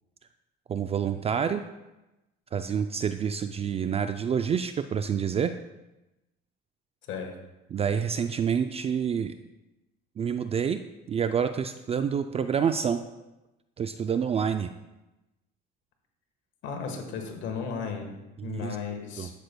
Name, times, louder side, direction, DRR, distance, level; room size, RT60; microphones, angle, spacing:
voice 1, 0.7-1.6 2.5-5.6 7.7-9.3 10.2-10.8 11.1-13.0 13.8-14.7 18.4-18.8 19.2-19.3, right 7 dB, 30° right, 9 dB, 0.4 m, -28 dB
voice 2, 16.6-18.1 18.4-19.3, left 6 dB, 65° left, 3 dB, 1.4 m, -34 dB
11.5 x 6.7 x 2.2 m, 0.99 s
supercardioid pair, 85°, 21 cm